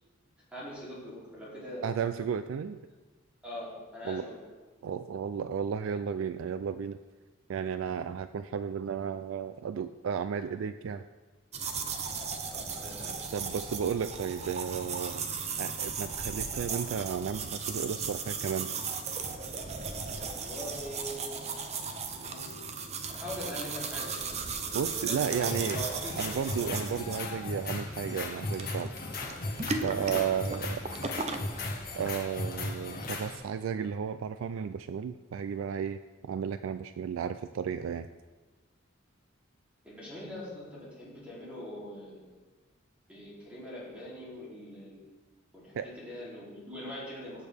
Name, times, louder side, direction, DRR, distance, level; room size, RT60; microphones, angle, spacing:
voice 1, 0.5-2.0 3.4-4.4 12.5-13.2 20.2-21.3 22.0-22.5 23.1-26.8 39.8-42.3 43.1-45.0 45.5-47.5, equal, 5° right, -8 dB, 3.2 m, -42 dB
voice 2, 1.8-2.8 4.0-4.2 4.8-7.0 7.5-11.0 13.3-15.2 15.6-18.7 24.7-28.9 29.8-30.8 31.9-38.1 45.7-45.9, right 7 dB, 80° right, 11 dB, 0.3 m, -33 dB
sound 1, 11.5-31.4, right 5 dB, 30° right, 0.6 m, -36 dB
sound 2, 25.3-33.4, left 2 dB, 45° left, 1.6 m, -37 dB
14.5 x 6.9 x 3.5 m, 1.3 s
head